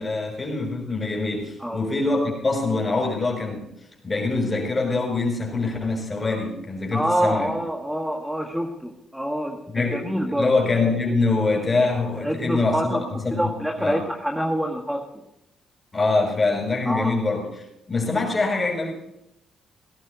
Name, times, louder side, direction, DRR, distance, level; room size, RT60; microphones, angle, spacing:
voice 1, 0.0-3.7 4.0-7.5 9.7-10.0 10.4-13.5 13.8-14.0 15.9-18.9, left 3 dB, 25° left, -2 dB, 5.7 m, -24 dB
voice 2, 6.9-10.5 12.2-13.0 13.3-15.2 16.9-17.1, equal, 5° right, 3 dB, 1.6 m, -26 dB
19.0 x 11.5 x 4.1 m, 0.83 s
cardioid pair, 90°, 0 cm